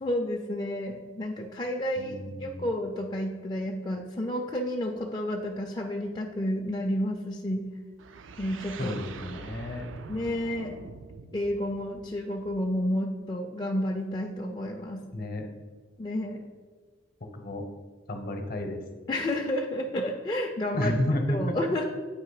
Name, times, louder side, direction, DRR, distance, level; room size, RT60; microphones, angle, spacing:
voice 1, 0.0-7.7 8.4-9.0 10.1-10.7 11.3-15.1 16.0-16.4 19.1-20.9 21.3-21.8, left 1 dB, 20° left, 0 dB, 0.4 m, -31 dB
voice 2, 2.0-2.7 8.8-9.9 15.1-15.5 17.3-17.6 18.1-18.8 20.7-21.6, left 1 dB, 50° left, 5 dB, 0.8 m, -31 dB
sound 1, 8.0-12.8, right 4 dB, 70° right, 0.4 m, -45 dB
8.5 x 2.8 x 4.8 m, 1.5 s
head